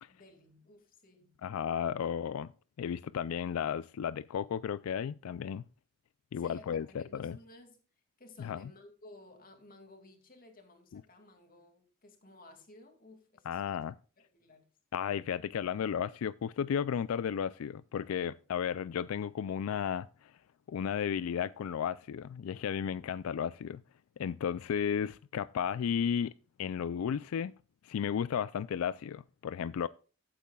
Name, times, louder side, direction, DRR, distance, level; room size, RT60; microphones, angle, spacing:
voice 1, 0.1-1.4 6.3-7.8 8.2-13.8 14.2-14.7, left 2 dB, 40° left, 2.4 m, -56 dB
voice 2, 1.4-2.5 2.8-5.6 6.3-7.4 8.4-8.7 13.5-14.0 14.9-20.3 20.7-23.8 24.2-26.3 26.6-27.5 27.8-29.9, left 8 dB, 85° left, 0.3 m, -34 dB
14.0 x 8.5 x 2.3 m
head